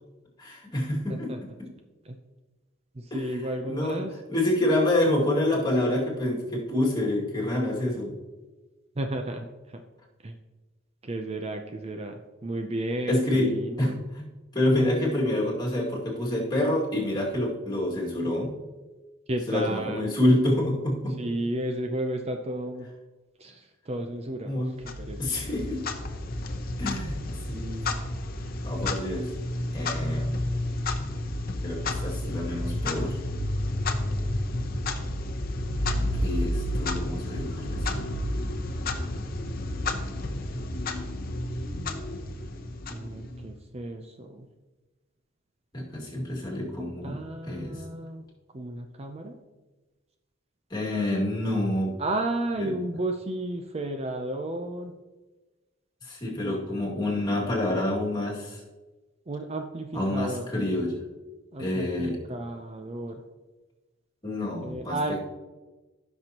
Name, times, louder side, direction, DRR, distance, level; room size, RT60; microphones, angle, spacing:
voice 1, 0.4-1.3 1.6-1.7 3.1-3.3 3.7-8.1 13.1-13.5 13.8-14.2 14.5-18.5 19.5-21.2 24.4-24.7 25.2-25.8 26.8-27.2 27.5-27.9 28.6-29.3 29.7-30.3 31.6-33.2 35.9-38.1 45.7-47.2 47.4-47.8 50.7-52.0 52.6-52.7 56.0-58.6 59.9-61.0 61.6-62.2 64.2-65.0, left 1 dB, 20° left, -3 dB, 2.2 m, -27 dB
voice 2, 1.1-1.5 2.0-2.2 3.0-4.2 9.0-9.8 10.2-10.4 11.0-14.0 19.3-20.1 21.2-22.9 23.4-25.2 42.9-44.5 47.0-48.3 48.5-49.4 52.0-54.9 59.3-60.5 61.5-63.2 64.6-65.2, right 1 dB, 30° right, 5 dB, 0.5 m, -33 dB
Clock, 24.8-43.6, left 1 dB, 45° left, 0.8 m, -31 dB
15.5 x 6.2 x 2.9 m, 1.2 s
head